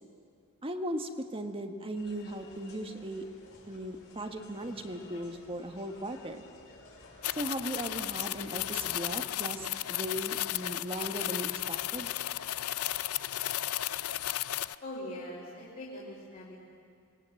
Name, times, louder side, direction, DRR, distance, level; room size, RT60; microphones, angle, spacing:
voice 1, 0.6-3.3 3.7-6.4 7.3-12.1, right 1 dB, 25° right, 5 dB, 1.5 m, -37 dB
sound 1, 1.9-9.3, left 2 dB, 65° left, 5.5 m, -54 dB
sound 2, 7.2-14.7, left 13 dB, 85° left, 0.5 m, -34 dB
voice 2, 14.8-16.6, left 1 dB, 40° left, -6 dB, 3.9 m, -42 dB
26.5 x 20.5 x 7.8 m, 2.4 s
head